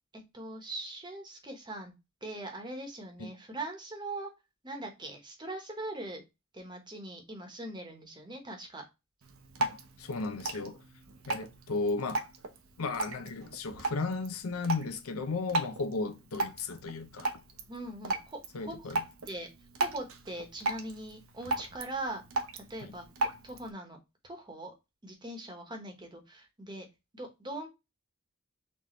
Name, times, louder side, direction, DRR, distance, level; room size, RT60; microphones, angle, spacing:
voice 1, 0.3-1.9 2.2-4.3 4.6-6.2 6.5-8.8 17.7-18.9 19.2-19.5 19.8-22.2 22.5-23.0 23.4-24.0 24.2-24.7 25.0-26.9 27.1-27.7, right 1 dB, 20° right, 1.0 m, -41 dB
Drip, 9.2-23.7, right 2 dB, 75° right, 0.8 m, -37 dB
voice 2, 9.6-10.8 11.3-12.3 12.8-17.3 18.5-19.0 22.8-22.9, left 3 dB, 85° left, 0.7 m, -35 dB
4.1 x 3.4 x 3.0 m
head